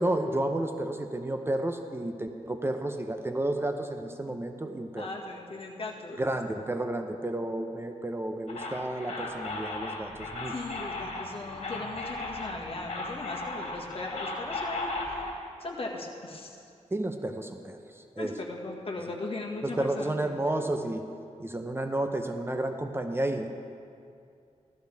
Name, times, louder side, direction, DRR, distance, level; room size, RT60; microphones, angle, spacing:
voice 1, 0.0-5.1 6.2-10.5 16.9-18.3 19.6-21.0 21.4-23.5, right 1 dB, 20° right, 5 dB, 0.7 m, -31 dB
voice 2, 5.0-6.2 10.5-15.3 15.6-16.6 18.2-20.3, left 2 dB, 50° left, -1 dB, 1.9 m, -38 dB
sound 1, 8.5-15.3, left 2 dB, 65° left, 2.6 m, -36 dB
15.5 x 13.0 x 3.5 m, 2.5 s
cardioid pair, 70°, 13 cm